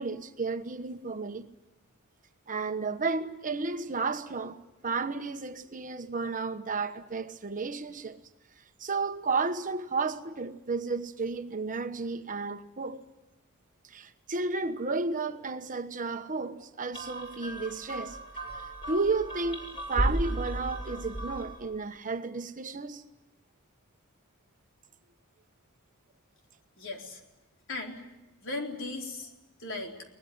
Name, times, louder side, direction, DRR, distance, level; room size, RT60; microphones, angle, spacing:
voice 1, 0.0-1.5 2.5-8.2 8.8-13.0 13.8-18.2 18.5-23.0, right 4 dB, 40° right, 1.2 m, -32 dB
sound 1, 16.9-21.7, right 1 dB, 25° left, 7.2 m, -34 dB
voice 2, 26.8-27.2 27.7-28.0 28.4-29.3 29.6-29.9, left 2 dB, 60° left, 4.2 m, -37 dB
23.0 x 20.0 x 9.6 m
head